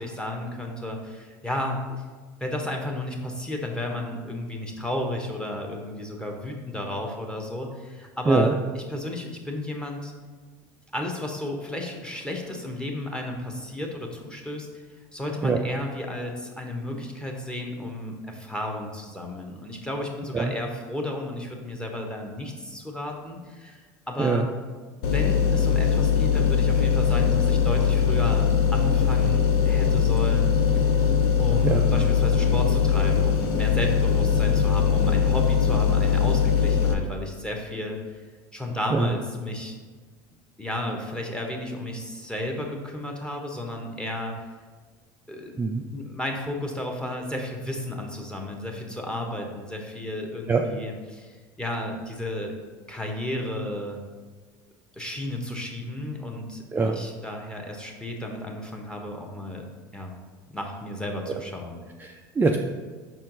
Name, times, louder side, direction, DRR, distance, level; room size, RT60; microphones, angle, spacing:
voice 1, 0.0-1.8 2.4-10.1 10.9-14.7 15.1-24.5 25.0-30.9 31.4-38.2 38.5-39.7 40.6-44.3 45.3-52.5 52.9-54.0 55.0-59.7 59.9-60.1 60.5-61.8, left 1 dB, 10° left, 0 dB, 1.2 m, -33 dB
sound 1, 25.0-36.9, left 7 dB, 80° left, 0.6 m, -21 dB
voice 2, 62.0-62.6, right 4 dB, 15° right, 2 dB, 0.4 m, -23 dB
5.5 x 4.3 x 3.9 m, 1.4 s
hypercardioid pair, 85°, 11 cm